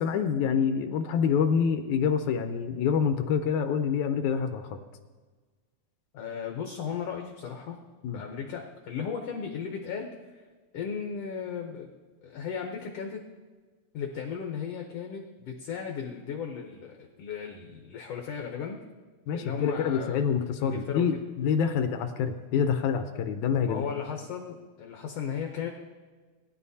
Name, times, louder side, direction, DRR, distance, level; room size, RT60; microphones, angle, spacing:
voice 1, 0.0-4.8 8.0-8.2 19.3-23.8, left 7 dB, 80° left, 7 dB, 2.1 m, -26 dB
voice 2, 6.1-7.8 8.1-10.1 10.7-11.9 12.2-13.2 13.9-18.8 19.3-20.2 20.6-21.0 23.6-25.7, left 7 dB, 65° left, 2 dB, 1.8 m, -35 dB
20.0 x 10.5 x 2.8 m, 1.4 s
omnidirectional pair, 3.4 m